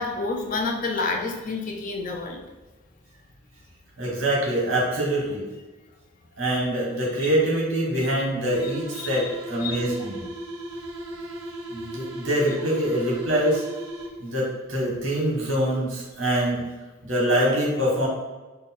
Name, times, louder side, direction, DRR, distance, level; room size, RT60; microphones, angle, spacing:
voice 1, 0.0-2.4 9.0-9.3 9.6-9.8, left 3 dB, 40° left, 2 dB, 0.5 m, -29 dB
voice 2, 4.0-5.5 6.4-10.2 11.7-13.6 14.2-16.6 17.0-18.1, right 1 dB, 65° right, -3 dB, 1.4 m, -24 dB
sound 1, 8.5-14.4, right 1 dB, 80° right, 0.8 m, -37 dB
3.2 x 2.3 x 4.2 m, 1.2 s
head